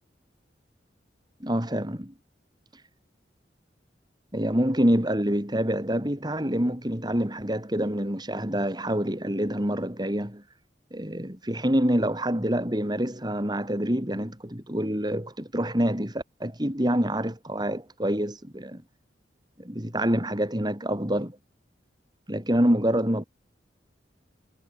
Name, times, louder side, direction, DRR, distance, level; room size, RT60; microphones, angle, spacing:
voice 1, 1.4-2.1 2.7-2.8 4.3-10.4 10.9-18.8 19.6-21.4 22.3-23.2, equal, 25° right, 5.0 m, -26 dB
head